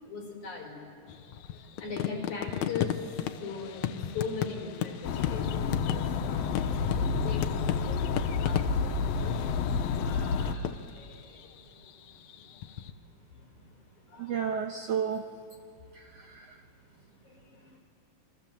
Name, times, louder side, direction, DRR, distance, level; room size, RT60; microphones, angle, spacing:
voice 1, 0.0-0.8 1.3-8.0 8.4-12.4 13.3-13.6 14.1-14.6 16.1-16.2 17.0-17.8, left 4 dB, 55° left, 1 dB, 5.9 m, -41 dB
sound 1, 1.1-12.9, left 11 dB, 70° left, 1.9 m, -36 dB
sound 2, 5.0-10.6, left 5 dB, 90° left, 2.9 m, -29 dB
voice 2, 14.2-15.2 15.9-16.6, right 7 dB, 65° right, 5 dB, 1.6 m, -32 dB
28.0 x 24.0 x 7.5 m, 2.3 s
omnidirectional pair, 4.1 m